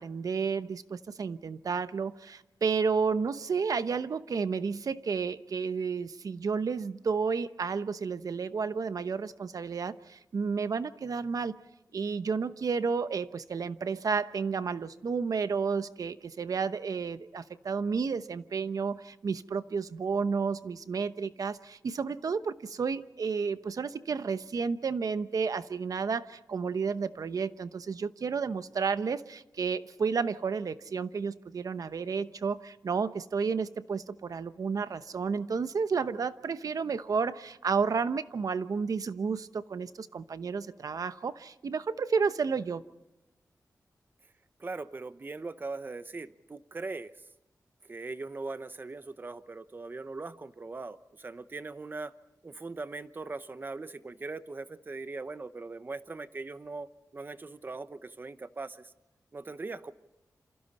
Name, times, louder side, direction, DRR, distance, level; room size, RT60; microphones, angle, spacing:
voice 1, 0.0-11.6 11.9-42.8, right 5 dB, 65° right, 0.9 m, -31 dB
voice 2, 44.6-47.1 47.9-52.1 52.4-58.9 59.3-59.9, right 3 dB, 35° right, 0.9 m, -40 dB
28.0 x 27.0 x 4.2 m
wide cardioid pair, 130°, 6 cm